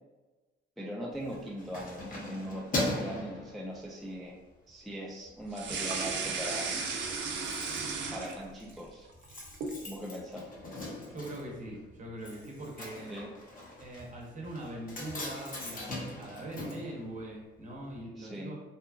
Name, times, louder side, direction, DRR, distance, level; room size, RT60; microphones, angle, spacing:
voice 1, 0.8-4.4 4.7-6.8 8.1-9.1 9.9-10.5 13.1-13.3 18.2-18.5, equal, ahead, -3 dB, 0.3 m, -40 dB
Keys jangling, 1.1-4.2 4.7-4.9 5.3-6.0 6.2-6.3 6.6-6.7 6.8-17.7 17.9-18.0, left 1 dB, 45° left, 0.8 m, -40 dB
sound 1, 5.5-8.7 9.1-9.8, right 4 dB, 65° right, 0.5 m, -34 dB
voice 2, 11.1-13.1 13.8-18.5, right 1 dB, 40° right, -2 dB, 0.8 m, -42 dB
2.8 x 2.3 x 2.3 m, 1.2 s
cardioid pair, 90°, 20 cm